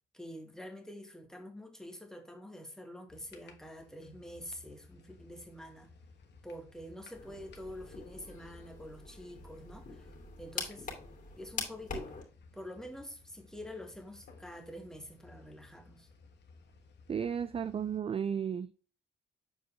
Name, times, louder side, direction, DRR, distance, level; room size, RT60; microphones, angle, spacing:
voice 1, 0.1-5.9 6.4-10.1 10.4-11.0 11.4-12.1 12.5-16.1, left 1 dB, 5° left, 1.7 m, -47 dB
sound 1, 3.1-18.0, left 4 dB, 60° left, 1.5 m, -59 dB
sound 2, 7.1-12.2, left 4 dB, 40° left, 2.7 m, -44 dB
voice 2, 17.1-18.7, right 7 dB, 30° right, 0.3 m, -34 dB
7.1 x 4.6 x 3.4 m
cardioid pair, 90°, 20 cm